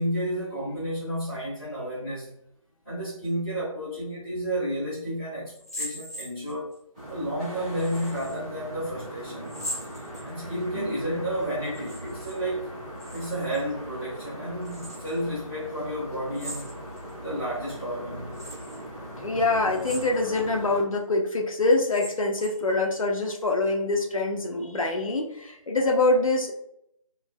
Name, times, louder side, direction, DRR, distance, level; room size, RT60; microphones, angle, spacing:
voice 1, 0.0-2.4 2.8-6.7 7.1-9.5 10.2-12.7 13.1-16.7 17.2-18.3, right 1 dB, 5° left, -19 dB, 1.0 m, -31 dB
sound 1, 5.5-6.8 7.8-8.4 9.4-10.6 11.6-12.4 12.6-13.6 14.6-15.2 16.3-17.1 17.6-17.7 18.3-18.8 19.7-20.4 20.9-21.0 21.7-22.7, equal, 25° left, 0.8 m, -40 dB
sound 2, 6.9-20.8, equal, 15° right, 0.5 m, -40 dB
voice 2, 19.2-26.5, left 2 dB, 70° left, 1 dB, 0.5 m, -25 dB
3.0 x 2.0 x 2.3 m, 0.75 s
figure-of-eight pair, 160°, 18 cm